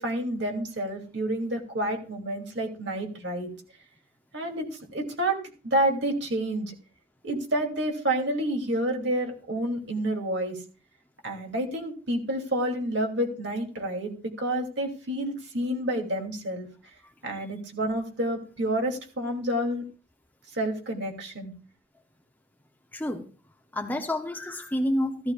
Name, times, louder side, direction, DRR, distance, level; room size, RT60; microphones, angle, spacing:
voice 1, 0.0-3.5 4.3-4.7 4.9-5.4 5.6-6.7 7.2-10.6 11.2-16.7 17.2-19.8 20.5-21.5, right 1 dB, 55° right, 2 dB, 2.7 m, -29 dB
voice 2, 22.9-23.3 23.7-25.3, left 1 dB, 10° left, 5 dB, 0.7 m, -29 dB
15.0 x 13.5 x 2.4 m, 0.36 s
head